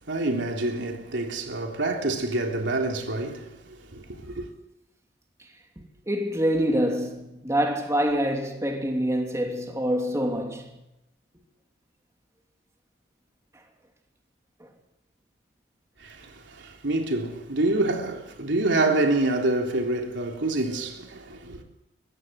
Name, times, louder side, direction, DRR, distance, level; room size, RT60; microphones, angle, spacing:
voice 1, 0.1-4.5 16.0-21.6, right 2 dB, 85° right, 3.5 m, -27 dB
voice 2, 6.1-10.7, equal, 15° right, 2.8 m, -26 dB
23.0 x 16.5 x 7.7 m
head